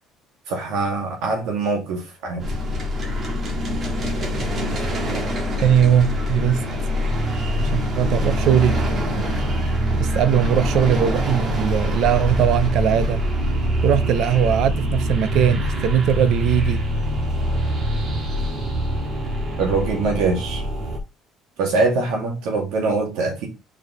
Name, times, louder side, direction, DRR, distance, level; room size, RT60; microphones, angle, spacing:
voice 1, 0.5-2.5 19.6-20.6 21.6-23.5, right 3 dB, 80° right, 2.4 m, -23 dB
sound 1, 2.4-21.0, equal, 35° right, 1.8 m, -24 dB
voice 2, 5.6-6.6 7.6-8.8 9.9-13.2 13.8-16.8, right 9 dB, 60° right, 0.7 m, -19 dB
4.9 x 4.8 x 4.1 m
cardioid pair, 135°, 0 cm